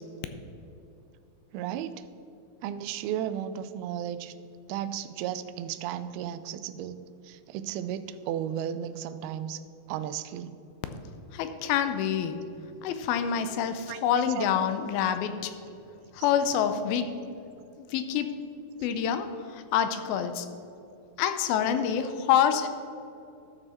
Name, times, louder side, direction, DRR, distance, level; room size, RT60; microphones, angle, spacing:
voice 1, 1.5-1.9 2.6-4.3 4.7-7.0 7.2-9.6 9.9-10.5 13.9-14.0 14.4-14.5, right 10 dB, 90° right, 12 dB, 2.5 m, -34 dB
voice 2, 11.3-12.4 12.8-15.5 16.1-17.1 17.9-18.3 18.8-20.5 21.2-22.7, left 8 dB, 80° left, 9 dB, 2.4 m, -27 dB
12.5 x 6.6 x 4.3 m, 2.8 s
omnidirectional pair, 4.3 m